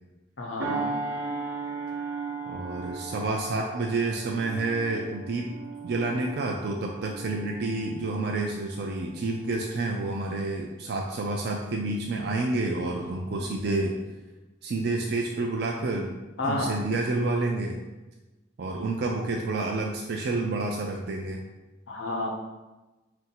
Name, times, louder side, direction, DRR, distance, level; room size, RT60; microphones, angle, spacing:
voice 1, 0.4-1.0 16.4-16.8 21.9-22.3, left 2 dB, 85° left, 0 dB, 0.8 m, -30 dB
sound 1, 0.6-9.4 9.9-10.1, right 3 dB, 80° right, 0.8 m, -37 dB
voice 2, 2.5-5.5 5.8-14.0 14.6-16.1 16.4-17.8 18.6-21.4, right 2 dB, 55° right, 0 dB, 0.4 m, -29 dB
3.8 x 2.6 x 4.3 m, 1.1 s
head